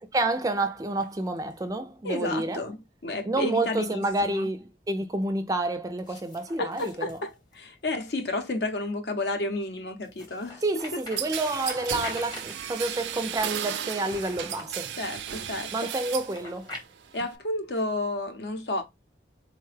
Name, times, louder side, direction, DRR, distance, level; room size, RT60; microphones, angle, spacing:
voice 1, 0.1-2.6 3.3-7.2 10.6-14.9 15.7-16.7, right 2 dB, 20° right, 0.3 m, -29 dB
sound 1, 0.8-1.8 4.0-4.3 6.0-7.9 10.0-12.9 13.8-15.0 16.0-16.8, left 2 dB, 25° left, 0.8 m, -45 dB
voice 2, 2.0-2.8 3.0-4.5 6.6-10.6 10.9-11.0 14.9-15.9 17.1-18.8, left 2 dB, 70° left, 0.7 m, -31 dB
sound 2, 11.2-16.4 16.7-17.4, right 9 dB, 90° right, 0.4 m, -34 dB
3.8 x 2.2 x 3.2 m
head